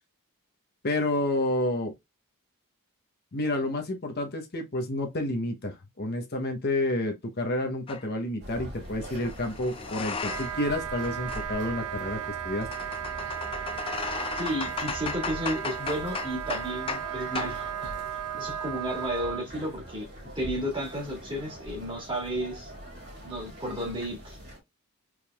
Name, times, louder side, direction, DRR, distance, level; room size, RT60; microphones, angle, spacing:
voice 1, 0.8-1.9 3.3-12.7, left 1 dB, 45° left, 0.8 m, -29 dB
sound 1, 7.9-8.1 9.1-10.7 11.0-17.1 17.4-17.6, left 5 dB, 25° left, 0.4 m, -36 dB
sound 2, 8.4-24.6, equal, 50° right, 2.6 m, -43 dB
Wind instrument woodwind instrument, 10.2-19.5, right 10 dB, 80° right, 0.4 m, -36 dB
voice 2, 14.4-17.9 18.3-20.1 20.3-22.7 23.2-24.4, equal, 20° right, 2.0 m, -33 dB
4.6 x 3.6 x 2.3 m
head